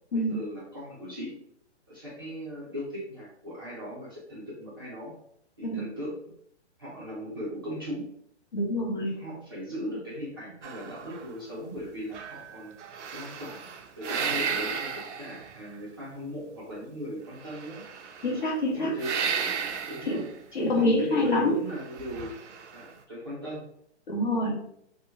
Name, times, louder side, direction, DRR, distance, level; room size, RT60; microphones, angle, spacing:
voice 1, 0.1-1.3 1.9-5.1 5.6-6.1 6.8-8.1 9.0-12.7 13.1-13.7 14.0-17.8 18.6-19.3 19.9-20.2 20.6-22.4 22.7-23.6, equal, 20° right, -9 dB, 0.5 m, -38 dB
voice 2, 8.5-9.1 18.2-18.9 20.1-20.2 20.5-21.6 24.1-24.6, left 1 dB, 45° left, -2 dB, 1.0 m, -26 dB
sound 1, 10.6-11.8 12.1-15.8 17.4-18.5 19.0-20.3 21.8-22.9, right 6 dB, 85° right, 0.5 m, -34 dB
2.9 x 2.1 x 3.5 m, 0.70 s
hypercardioid pair, 170°, 35 cm